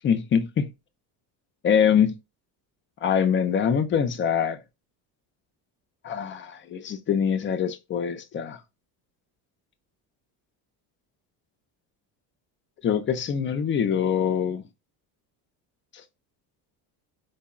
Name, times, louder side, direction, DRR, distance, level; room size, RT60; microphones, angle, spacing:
voice 1, 0.0-0.7 1.6-2.1 3.0-4.6 6.0-8.6 12.8-14.6, left 7 dB, 30° left, 0.4 m, -24 dB
3.5 x 2.0 x 2.3 m
supercardioid pair, 85°, 46 cm